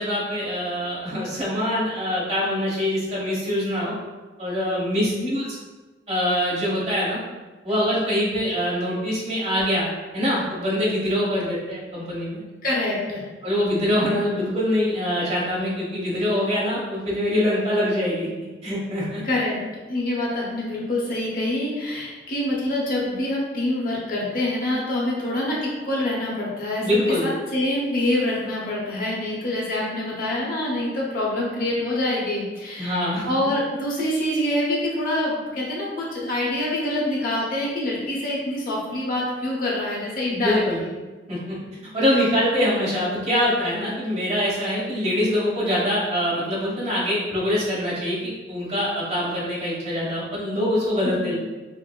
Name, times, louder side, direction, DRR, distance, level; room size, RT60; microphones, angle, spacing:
voice 1, 0.0-3.9 4.4-5.4 6.1-7.2 7.6-9.9 10.1-12.4 13.4-18.3 18.6-19.2 26.8-27.3 32.8-33.3 40.3-40.8 41.3-41.6 41.9-51.3, left 1 dB, 35° right, -6 dB, 1.1 m, -24 dB
voice 2, 5.0-5.3 12.6-13.2 19.2-19.6 19.9-26.9 27.2-40.9 42.6-42.7 51.0-51.3, left 1 dB, 50° left, -4 dB, 0.8 m, -26 dB
5.8 x 2.0 x 2.3 m, 1.2 s
head